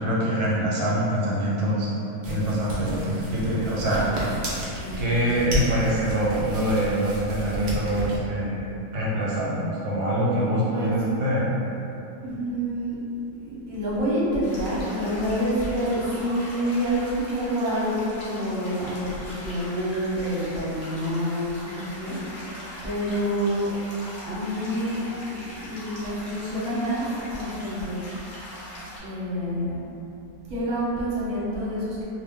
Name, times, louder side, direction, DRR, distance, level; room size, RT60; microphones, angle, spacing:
voice 1, 0.0-1.9 2.3-4.4 5.0-8.7 8.9-11.6, right 1 dB, 85° right, -6 dB, 1.2 m, -24 dB
sound 1, 2.2-8.2, equal, 65° right, 0.4 m, -32 dB
voice 2, 4.8-5.8 10.7-11.0 12.2-13.0 13.3-22.1 22.8-23.7 24.2-25.0 25.3-28.0 29.0-29.8 30.5-32.0, equal, 40° right, -9 dB, 0.7 m, -28 dB
sound 2, 14.4-29.0, left 1 dB, 55° left, 0.6 m, -41 dB
2.4 x 2.1 x 3.5 m, 2.8 s
omnidirectional pair, 1.6 m